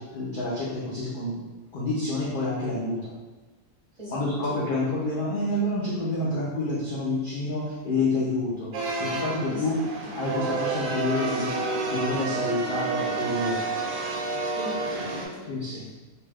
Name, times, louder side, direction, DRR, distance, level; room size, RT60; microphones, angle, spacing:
voice 1, 0.0-1.4 1.7-3.1 4.1-8.7 9.0-9.8 10.1-11.5 11.8-13.8 15.5-15.8, left 2 dB, 75° left, -7 dB, 0.4 m, -28 dB
sound 1, 8.7-15.2, right 3 dB, 85° right, 1.1 m, -29 dB
voice 2, 9.5-10.2 14.5-16.0, equal, 35° right, -10 dB, 0.6 m, -40 dB
2.6 x 2.2 x 3.3 m, 1.3 s
omnidirectional pair, 1.6 m